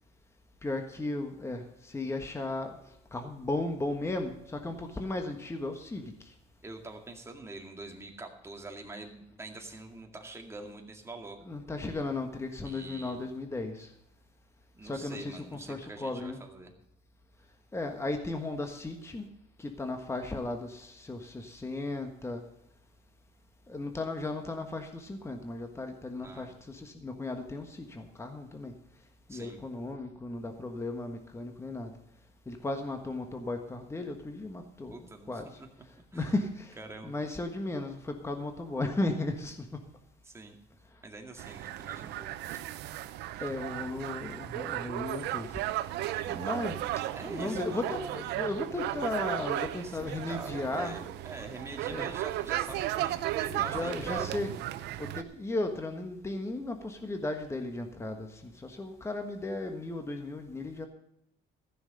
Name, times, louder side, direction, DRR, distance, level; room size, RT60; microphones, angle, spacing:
voice 1, 0.6-2.8 3.1-6.3 11.4-13.9 14.8-16.4 17.7-19.2 19.6-22.4 23.7-28.7 29.3-31.9 32.5-35.0 35.3-35.5 36.1-36.8 37.0-39.7 43.4-45.6 46.3-46.8 47.2-51.0 51.9-52.1 53.4-54.5 55.0-60.9, left 2 dB, 15° left, 5 dB, 1.4 m, -35 dB
voice 2, 6.6-11.4 12.6-13.2 14.7-16.7 26.1-26.5 29.3-29.6 34.9-35.3 35.6-35.7 36.1-36.3 36.8-37.1 40.2-40.6 41.0-42.6 47.1-48.2 49.5-54.4, right 2 dB, 15° right, 3 dB, 2.1 m, -45 dB
sound 1, 41.4-55.2, right 14 dB, 80° right, 0.7 m, -35 dB
14.5 x 6.4 x 7.7 m, 0.80 s
cardioid pair, 110°, 17 cm